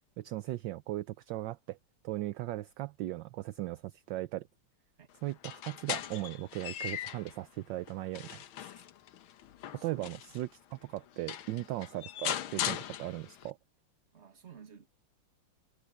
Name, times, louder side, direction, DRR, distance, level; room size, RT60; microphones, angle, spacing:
voice 1, 0.2-1.8 2.0-4.5 5.2-8.7 9.8-13.6, right 16 dB, 70° right, 1.2 m, -38 dB
sound 1, 5.3-7.4 7.9-10.4 11.0-11.1 11.3-13.5, left 11 dB, 85° left, 1.8 m, -39 dB
voice 2, 9.8-10.1 11.6-11.7 14.1-14.9, right 7 dB, 35° right, 1.9 m, -53 dB
omnidirectional pair, 2.2 m